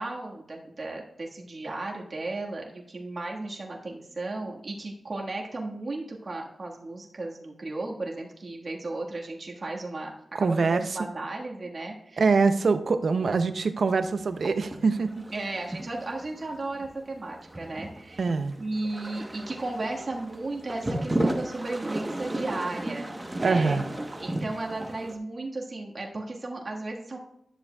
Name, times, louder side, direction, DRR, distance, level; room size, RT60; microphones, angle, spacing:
voice 1, 0.0-10.1 10.4-12.2 15.3-18.3 18.6-23.8 24.2-27.2, right 2 dB, 50° right, -1 dB, 1.5 m, -35 dB
voice 2, 10.3-11.0 12.2-15.1 18.2-18.6 23.4-23.9, right 4 dB, 70° right, 10 dB, 0.5 m, -24 dB
sound 1, 14.0-25.2, right 1 dB, 20° right, 1.0 m, -34 dB
11.5 x 7.0 x 2.3 m, 0.79 s
cardioid pair, 65°, 0 cm